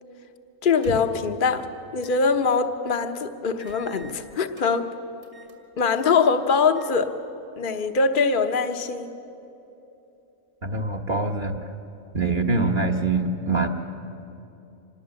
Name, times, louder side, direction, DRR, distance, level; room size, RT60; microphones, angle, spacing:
voice 1, 0.6-1.6 1.9-4.9 5.8-7.1 7.6-9.1, left 5 dB, 40° left, 8 dB, 1.1 m, -22 dB
sound 1, 0.7-1.3 2.0-2.2 2.6-2.7 3.6-4.7 5.2-5.6 5.9-6.2 6.7-7.0 7.3-7.4 7.9-8.7, right 2 dB, 70° right, 3.0 m, -42 dB
voice 2, 10.6-11.6 12.1-13.7, right 3 dB, 40° right, 4 dB, 1.2 m, -24 dB
26.0 x 20.0 x 7.7 m, 2.9 s
omnidirectional pair, 1.4 m